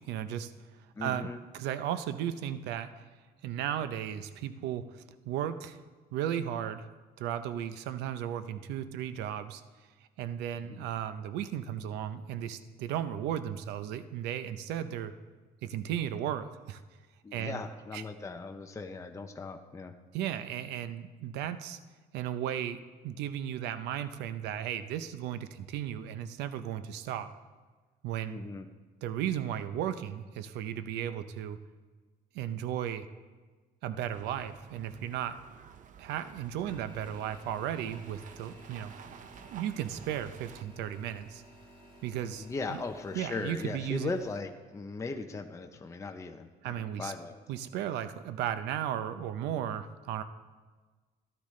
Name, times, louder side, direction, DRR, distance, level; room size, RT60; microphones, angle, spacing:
voice 1, 0.1-0.5 1.0-3.0 3.4-5.8 6.1-6.9 7.2-9.6 10.2-15.1 15.6-16.8 17.3-17.6 17.9-18.0 20.1-21.8 22.1-22.8 23.0-27.3 28.0-28.4 29.0-31.6 32.3-33.1 33.8-35.4 36.0-38.9 39.5-41.4 42.0-42.8 43.1-44.1 46.6-47.1 47.5-50.2, right 10 dB, 90° right, 12 dB, 0.6 m, -35 dB
voice 2, 1.0-1.4 17.2-19.9 28.3-28.7 42.4-47.4, left 3 dB, 20° left, 5 dB, 0.7 m, -38 dB
sound 1, 34.1-40.6, right 8 dB, 50° right, 0.6 m, -52 dB
sound 2, 36.7-44.4, right 1 dB, 30° right, 1.8 m, -55 dB
13.5 x 11.5 x 3.2 m, 1.4 s
cardioid pair, 110°, 17 cm